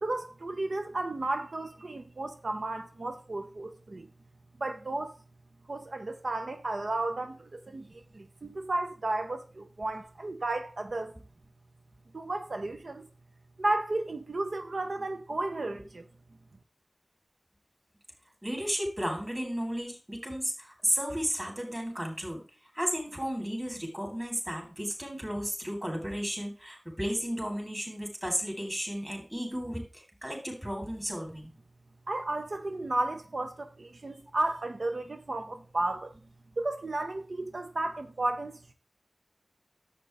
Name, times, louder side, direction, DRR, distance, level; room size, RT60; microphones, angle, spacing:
voice 1, 0.0-4.1 4.6-5.1 5.7-11.1 12.1-13.1 13.6-16.0 32.1-36.1 36.6-38.7, right 2 dB, 80° right, 0.6 m, -33 dB
voice 2, 18.4-22.4 22.7-31.5, equal, 15° right, 3.7 m, -33 dB
11.0 x 7.6 x 3.4 m
wide cardioid pair, 50°, 0 cm